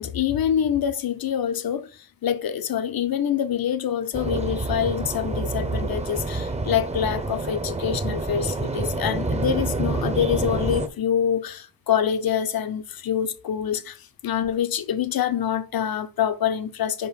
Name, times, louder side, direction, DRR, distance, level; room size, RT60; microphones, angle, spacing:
voice 1, 0.0-17.1, left 9 dB, 70° left, 0.8 m, -26 dB
sound 1, 4.1-10.9, right 3 dB, 20° right, 0.7 m, -27 dB
5.4 x 5.2 x 6.4 m
wide cardioid pair, 160°, 36 cm